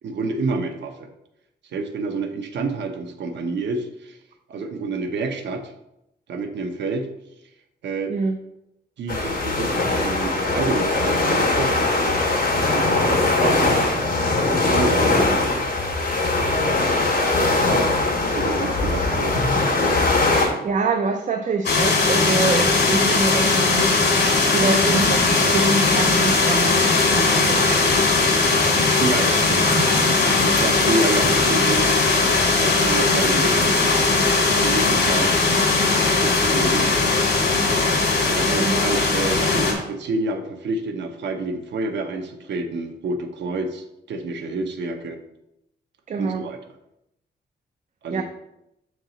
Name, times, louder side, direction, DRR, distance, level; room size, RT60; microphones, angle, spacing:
voice 1, 0.0-1.1 1.7-4.2 4.5-5.7 6.3-7.1 7.8-8.2 9.0-12.2 12.7-14.0 14.5-15.7 18.3-19.4 29.0-29.7 30.4-31.9 32.6-33.8 34.4-35.6 36.2-37.2 38.3-45.2 46.2-46.6 48.0-48.2, right 3 dB, 85° right, 6 dB, 0.8 m, -28 dB
sound 1, 9.1-20.5, left 2 dB, 50° left, 1.9 m, -21 dB
voice 2, 20.6-23.9 24.5-27.9 29.6-30.2 38.5-38.8 46.1-46.4 48.1-48.2, right 4 dB, 45° right, 5 dB, 0.5 m, -25 dB
sound 2, 21.6-39.7, left 3 dB, 70° left, 2.0 m, -19 dB
6.7 x 4.6 x 3.9 m, 0.86 s
wide cardioid pair, 135°, 18 cm